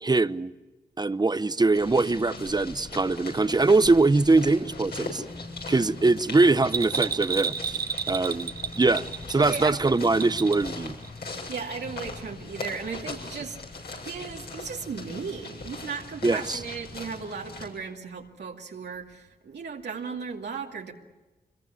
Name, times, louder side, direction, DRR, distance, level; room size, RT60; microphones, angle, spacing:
voice 1, 0.0-0.5 1.0-5.2 5.7-7.8 8.1-10.9 16.2-16.6, right 3 dB, 25° right, 0.8 m, -22 dB
sound 1, 1.7-17.7, left 3 dB, 70° left, 7.4 m, -39 dB
Bell, 6.6-10.7 11.0-11.1, right 6 dB, 65° right, 1.3 m, -31 dB
voice 2, 9.4-9.8 11.5-13.6 14.0-20.9, right 5 dB, 85° right, 2.4 m, -36 dB
25.0 x 21.5 x 8.4 m
cardioid pair, 70°, 17 cm